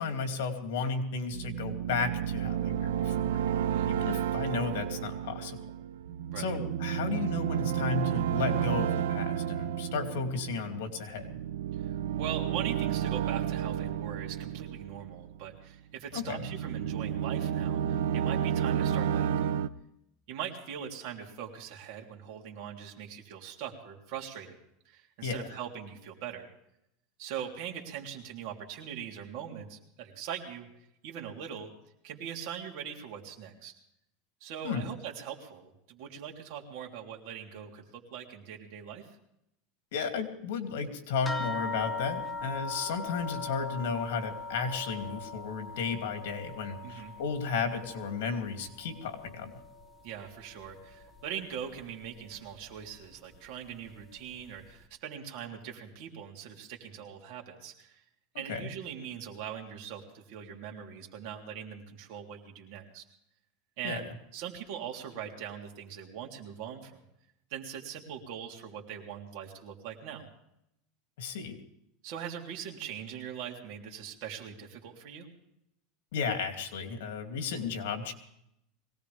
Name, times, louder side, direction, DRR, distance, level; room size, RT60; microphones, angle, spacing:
voice 1, 0.0-3.4 3.9-5.6 6.4-11.3 16.1-16.4 25.2-25.4 34.6-34.8 39.9-49.5 58.5-58.7 63.8-64.0 71.2-71.6 76.1-78.1, left 5 dB, 75° left, 5 dB, 2.7 m, -34 dB
sound 1, 1.3-15.6 16.1-19.7, right 9 dB, 85° right, 0.7 m, -31 dB
voice 2, 11.7-19.6 20.3-24.6 24.8-26.5 27.2-30.7 31.0-31.7 32.0-33.7 34.4-39.2 46.8-47.1 50.0-58.0 58.4-63.0 63.8-67.0 67.5-70.3 72.0-75.3, right 8 dB, 50° right, 1 dB, 3.3 m, -41 dB
sound 2, 41.3-50.1 50.4-51.3 52.0-52.1 52.5-52.7, left 3 dB, 5° left, 1.0 m, -40 dB
22.5 x 18.5 x 3.5 m, 0.79 s
supercardioid pair, 165°, 0 cm